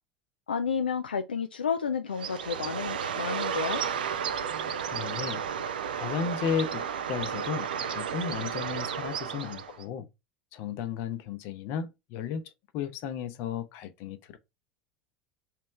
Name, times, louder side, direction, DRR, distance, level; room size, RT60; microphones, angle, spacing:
voice 1, 0.5-3.8, left 6 dB, 75° left, 0.4 m, -31 dB
Bird, 2.1-9.8, right 7 dB, 70° right, 0.4 m, -33 dB
voice 2, 4.9-5.4 6.0-10.1 10.5-14.4, left 7 dB, 50° left, 0.7 m, -34 dB
3.4 x 3.1 x 4.4 m
figure-of-eight pair, 75°, 5 cm